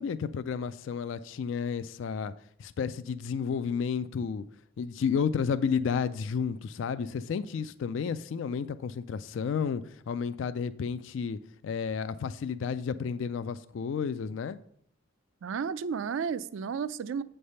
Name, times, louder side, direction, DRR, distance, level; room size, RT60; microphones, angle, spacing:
voice 1, 0.0-2.3 2.6-4.4 4.8-11.4 11.6-14.6, left 6 dB, 65° left, 0.3 m, -31 dB
voice 2, 15.4-17.2, right 6 dB, 70° right, 0.4 m, -32 dB
8.6 x 3.3 x 5.5 m
head